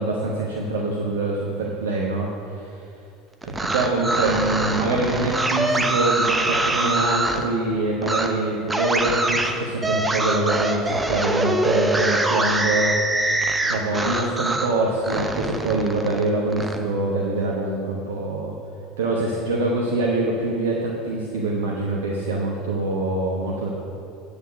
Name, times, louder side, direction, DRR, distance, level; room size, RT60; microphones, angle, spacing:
voice 1, 0.0-2.9 3.7-13.3 13.6-18.5 19.0-23.7, right 2 dB, 70° right, -2 dB, 1.1 m, -24 dB
sound 1, 3.4-7.4 8.0-8.3 8.7-14.7 15.0-16.8, right 2 dB, 15° right, 0.9 m, -23 dB
9.3 x 8.5 x 5.1 m, 2.5 s
figure-of-eight pair, 70°, 0 cm